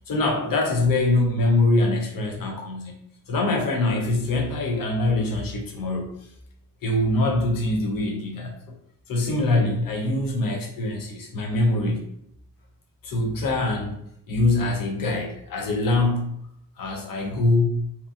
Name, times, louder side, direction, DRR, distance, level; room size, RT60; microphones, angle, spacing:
voice 1, 0.1-3.0 3.3-6.2 6.8-8.6 9.1-12.1 13.0-14.0 14.3-16.4 16.8-17.9, left 2 dB, 75° left, 2 dB, 0.7 m, -23 dB
2.9 x 2.4 x 2.4 m, 0.72 s
cardioid pair, 55°, 34 cm